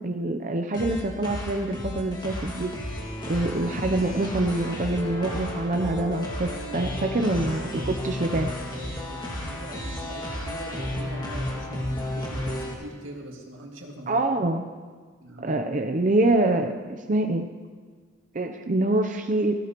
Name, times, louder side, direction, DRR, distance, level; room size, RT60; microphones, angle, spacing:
voice 1, 0.0-2.7 3.3-8.5 14.1-14.6 15.4-17.5 18.3-19.5, right 2 dB, 40° right, 5 dB, 0.6 m, -25 dB
sound 1, 0.7-12.7, left 1 dB, 20° left, 2.0 m, -33 dB
voice 2, 8.8-14.2 15.2-15.6, right 1 dB, 80° right, 0 dB, 2.1 m, -42 dB
17.5 x 15.0 x 3.0 m, 1.5 s
head